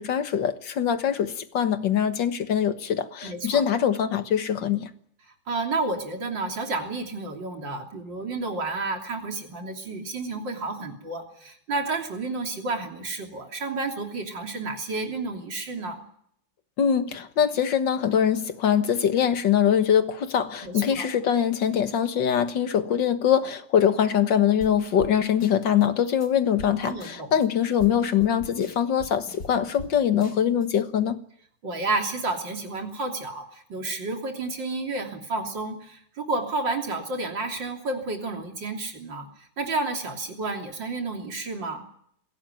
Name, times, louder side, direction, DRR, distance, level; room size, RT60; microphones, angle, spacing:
voice 1, 0.0-4.9 16.8-31.2, left 8 dB, 85° left, 2.1 m, -23 dB
voice 2, 3.2-3.6 5.5-16.0 20.6-21.1 26.8-27.3 31.6-41.9, right 3 dB, 85° right, 3.9 m, -31 dB
sound 1, 24.6-24.7 25.0-25.1 25.4-25.9 26.2-26.3 26.6-26.7 27.0-27.5 27.8-29.9 30.2-30.7, left 3 dB, 55° left, 3.0 m, -41 dB
22.0 x 17.0 x 9.4 m
omnidirectional pair, 1.9 m